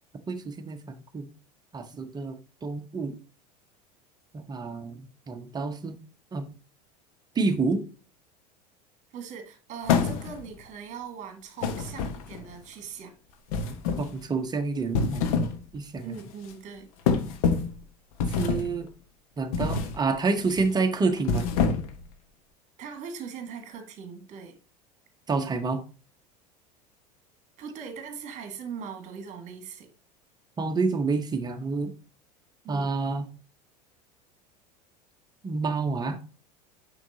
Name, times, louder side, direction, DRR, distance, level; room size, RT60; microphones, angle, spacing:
voice 1, 0.3-1.3 1.7-2.4 2.6-3.1 4.3-5.9 6.3-6.5 7.3-7.8 14.0-15.3 15.7-16.1 18.4-18.9 19.4-21.5 25.3-25.8 30.6-31.9 32.7-33.2 35.4-36.2, right 4 dB, 20° right, 1.0 m, -28 dB
voice 2, 9.1-13.1 16.0-16.9 22.8-24.6 27.6-29.9 32.6-32.9, right 6 dB, 35° right, 1.8 m, -40 dB
sound 1, 9.9-10.5 11.6-12.5 13.5-14.2 14.8-15.6 16.0-16.2 17.1-17.8 18.2-18.8 19.5-20.0 20.4-20.7 21.2-22.0, left 5 dB, 55° left, 1.0 m, -26 dB
8.9 x 3.9 x 2.7 m
figure-of-eight pair, 75°, 21 cm